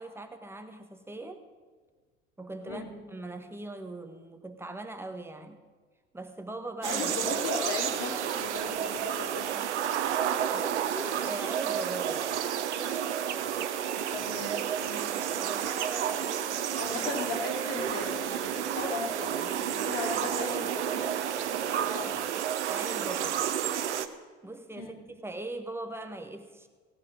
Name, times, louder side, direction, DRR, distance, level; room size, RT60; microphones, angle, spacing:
voice 1, 0.0-1.4 2.4-2.8 3.1-5.6 6.1-7.1 10.5-12.7 15.3-16.7 21.8-23.5 24.4-26.7, right 2 dB, 5° right, 6 dB, 1.3 m, -41 dB
voice 2, 6.8-9.5 14.1-15.1 16.7-22.1 24.8-25.0, left 4 dB, 45° left, 3 dB, 2.5 m, -37 dB
sound 1, 6.8-24.1, right 9 dB, 70° right, 0.8 m, -31 dB
16.5 x 6.1 x 9.0 m, 1.4 s
figure-of-eight pair, 70°, 35 cm